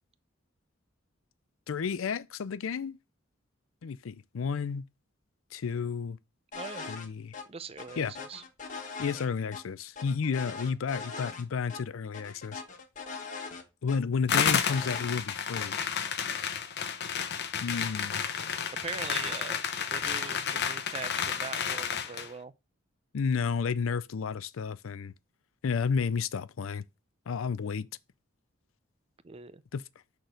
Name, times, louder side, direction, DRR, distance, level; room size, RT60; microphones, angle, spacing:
voice 1, 1.7-3.0 3.8-4.9 5.5-6.2 6.9-7.3 8.0-8.1 9.0-12.6 13.8-15.7 17.6-18.3 23.1-25.1 25.6-26.8 27.3-27.9 29.7-29.8, left 5 dB, 75° left, 0.4 m, -31 dB
sound 1, 6.5-7.1 7.3-7.4 7.8-9.6 10.0-11.4 11.7-11.8 12.1-14.0 14.3-15.1, left 4 dB, 40° left, 1.3 m, -41 dB
voice 2, 6.5-6.8 7.5-8.4 18.8-22.5 29.2-29.6, right 5 dB, 30° right, 0.5 m, -41 dB
sound 2, 14.3-22.3, left 7 dB, 55° left, 0.8 m, -31 dB
6.1 x 4.2 x 5.0 m
head